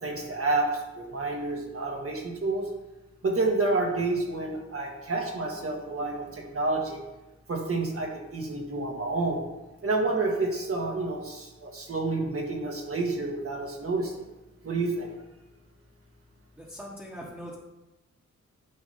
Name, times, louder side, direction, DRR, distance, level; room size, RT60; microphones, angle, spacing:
voice 1, 0.0-2.7 3.2-7.0 7.5-9.4 9.8-14.1 14.6-15.1, right 3 dB, 50° right, 1 dB, 1.7 m, -29 dB
voice 2, 16.6-17.5, equal, 5° right, -7 dB, 1.4 m, -41 dB
9.4 x 5.0 x 4.1 m, 1.1 s
wide cardioid pair, 100°, 29 cm